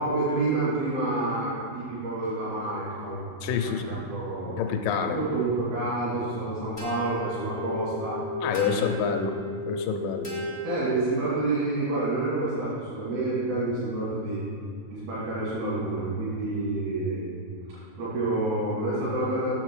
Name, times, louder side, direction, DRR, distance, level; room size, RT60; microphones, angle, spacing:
voice 1, 0.0-3.2 3.9-4.6 5.0-8.2 8.6-8.9 10.6-14.4 14.9-17.3 17.7-19.5, right 2 dB, 85° right, -11 dB, 4.6 m, -28 dB
voice 2, 3.4-4.0 4.6-5.2 8.4-9.4 9.6-10.3, left 7 dB, 80° left, 5 dB, 2.1 m, -28 dB
sound 1, 6.8-11.5, left 1 dB, 45° left, 0.4 m, -35 dB
8.9 x 7.2 x 4.8 m, 2.3 s
omnidirectional pair, 4.3 m